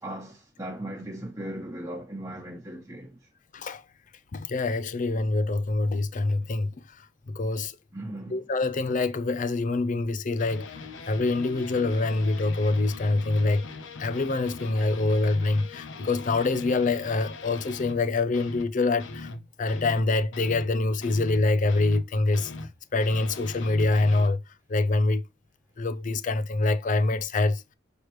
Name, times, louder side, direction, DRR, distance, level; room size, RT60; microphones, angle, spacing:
voice 1, 0.0-3.2 7.9-8.4, right 1 dB, 15° right, 1.1 m, -37 dB
voice 2, 4.3-6.7 7.3-7.8 8.3-10.7 11.1-13.6 14.0-19.3 19.6-22.5 22.9-24.4 24.7-25.2 25.8-27.6, left 2 dB, 40° left, 0.5 m, -25 dB
sound 1, 10.4-18.1 18.3-18.7 19.0-22.1 22.3-24.3, left 3 dB, 80° left, 0.8 m, -41 dB
6.5 x 4.8 x 3.0 m
head